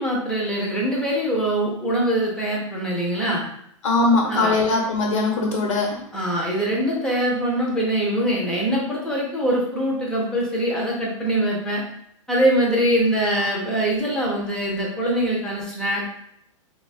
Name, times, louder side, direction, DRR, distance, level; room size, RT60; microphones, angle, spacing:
voice 1, 0.0-3.4 4.3-4.6 6.1-11.8 12.3-16.1, right 1 dB, 5° left, -3 dB, 0.5 m, -23 dB
voice 2, 3.8-6.0, left 3 dB, 65° left, 0 dB, 1.1 m, -20 dB
2.8 x 2.3 x 4.1 m, 0.74 s
supercardioid pair, 170°, 17 cm